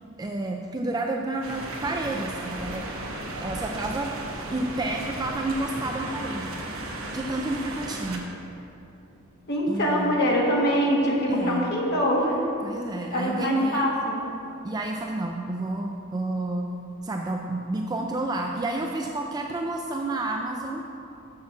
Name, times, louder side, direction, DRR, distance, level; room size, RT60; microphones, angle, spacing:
voice 1, 0.2-2.8 3.4-4.2 4.5-6.6 7.1-8.2 9.7-10.3 11.3-11.6 12.6-13.9 14.6-16.7 17.0-20.8, right 2 dB, 20° right, 2 dB, 0.3 m, -30 dB
sound 1, 1.4-8.2, right 1 dB, 80° right, 1.1 m, -35 dB
voice 2, 9.5-12.4 13.1-14.2, equal, 55° left, -3 dB, 1.7 m, -24 dB
7.2 x 6.5 x 6.0 m, 2.7 s
head